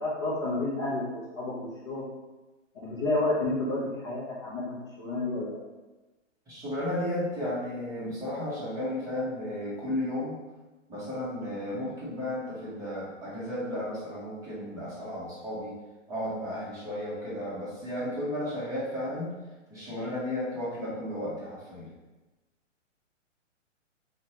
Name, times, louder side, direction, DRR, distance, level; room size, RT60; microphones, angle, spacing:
voice 1, 0.0-2.0 2.8-5.6, left 2 dB, 25° left, -8 dB, 0.3 m, -30 dB
voice 2, 6.5-10.4 10.9-15.7 16.1-19.3 19.7-21.9, left 1 dB, 10° right, -9 dB, 0.7 m, -33 dB
4.1 x 2.1 x 2.7 m, 1.1 s
hypercardioid pair, 130°, 38 cm